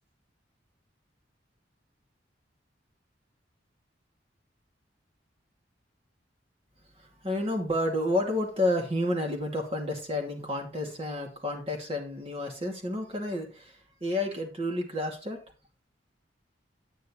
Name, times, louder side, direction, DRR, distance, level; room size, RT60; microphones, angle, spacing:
voice 1, 6.9-15.4, left 1 dB, 35° right, 2.4 m, -30 dB
9.5 x 9.2 x 3.2 m
head